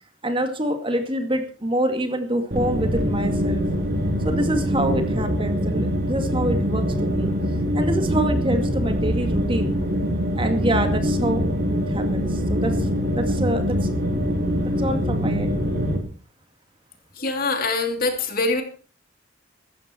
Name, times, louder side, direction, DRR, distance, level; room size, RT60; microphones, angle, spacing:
voice 1, 0.2-3.6 4.2-7.3 7.7-9.8 10.4-11.4 11.9-12.9 13.1-13.9 14.6-15.6, right 1 dB, 25° right, 6 dB, 2.2 m, -26 dB
sound 1, 2.5-16.0, equal, 50° right, 3.6 m, -23 dB
voice 2, 17.2-18.6, left 3 dB, 45° left, 6 dB, 2.7 m, -24 dB
16.0 x 14.0 x 4.5 m, 0.38 s
head